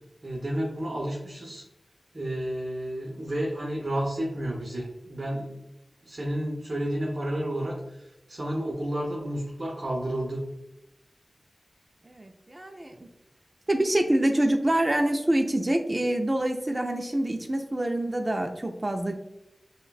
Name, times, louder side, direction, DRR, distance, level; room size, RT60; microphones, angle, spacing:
voice 1, 0.2-1.6 2.1-5.6 6.0-10.4, right 1 dB, 55° right, -3 dB, 0.8 m, -31 dB
voice 2, 12.1-13.1 13.7-19.1, right 1 dB, 30° right, 4 dB, 0.4 m, -26 dB
5.4 x 2.2 x 2.3 m, 0.91 s
cardioid pair, 45°, 0 cm